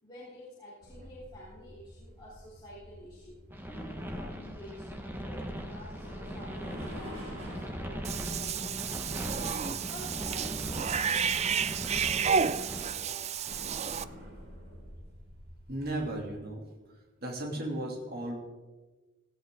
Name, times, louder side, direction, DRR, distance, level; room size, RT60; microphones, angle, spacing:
voice 1, 0.0-3.4 3.7-9.5 9.9-13.3, equal, 20° left, -9 dB, 4.0 m, -49 dB
sound 1, 0.8-16.3, equal, 65° right, 6.5 m, -49 dB
sound 2, 3.5-12.8, equal, 10° right, 1.6 m, -39 dB
Cat / Bathtub (filling or washing), 8.0-14.0, right 6 dB, 30° right, 0.4 m, -31 dB
voice 2, 15.7-16.6 17.2-18.4, right 1 dB, 50° right, -1 dB, 3.0 m, -35 dB
18.0 x 15.5 x 3.9 m, 1.2 s
head